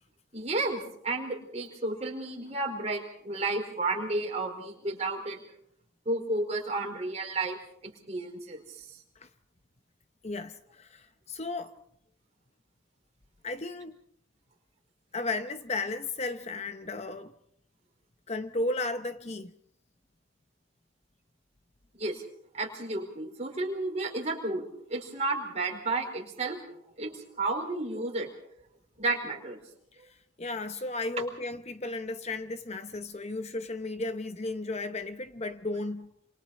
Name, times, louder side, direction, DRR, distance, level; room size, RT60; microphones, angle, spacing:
voice 1, 0.3-5.4 6.0-7.6 8.1-8.9 22.0-22.2 22.5-26.7 27.0-28.3 29.0-29.6, right 2 dB, 30° right, 4.7 m, -32 dB
voice 2, 10.2-11.7 13.4-14.0 15.1-17.3 18.3-19.5 30.4-36.1, left 2 dB, 30° left, 0.8 m, -34 dB
28.0 x 28.0 x 4.2 m
head